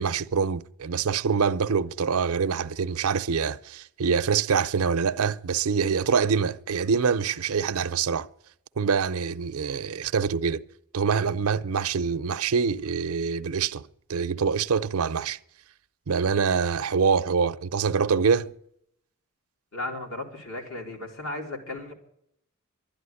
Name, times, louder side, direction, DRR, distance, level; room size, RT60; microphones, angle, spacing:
voice 1, 0.0-8.3 8.8-10.6 10.9-13.8 14.1-15.4 16.1-18.5, right 6 dB, 80° right, 0.6 m, -25 dB
voice 2, 19.7-21.9, left 2 dB, 65° left, 3.0 m, -35 dB
12.0 x 10.5 x 9.8 m
head